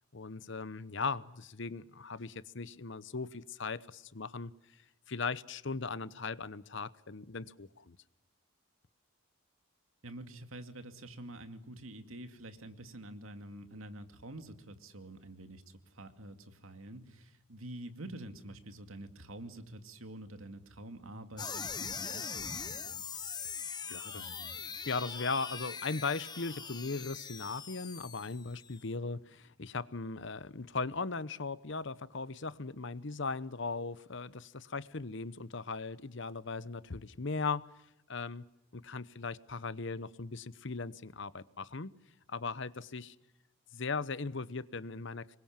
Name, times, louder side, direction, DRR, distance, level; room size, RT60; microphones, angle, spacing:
voice 1, 0.1-4.5 5.1-8.0 23.9-24.3 24.8-37.7 38.1-38.5 38.7-41.9 42.3-43.1 43.7-45.4, left 4 dB, 55° left, 17 dB, 0.9 m, -38 dB
voice 2, 10.0-23.0 24.2-24.6, right 1 dB, 75° right, 8 dB, 2.4 m, -47 dB
sound 1, 21.4-28.8, left 6 dB, 20° left, 1.0 m, -42 dB
26.0 x 22.0 x 7.4 m, 0.86 s
head